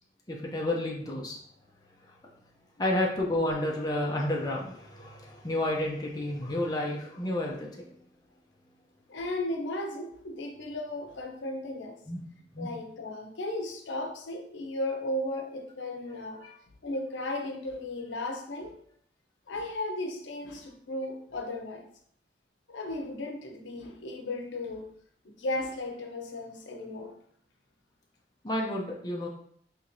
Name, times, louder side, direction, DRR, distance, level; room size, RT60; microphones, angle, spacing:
voice 1, 0.3-1.4 2.0-2.1 2.8-7.9 12.1-12.3 12.5-12.7 16.4-16.6 28.4-29.3, left 1 dB, 20° left, -2 dB, 0.5 m, -31 dB
voice 2, 9.1-12.0 12.6-16.5 16.8-18.8 19.5-21.9 22.7-24.9 25.2-27.2, left 1 dB, 90° left, 3 dB, 0.6 m, -35 dB
4.3 x 3.0 x 2.6 m, 0.63 s
head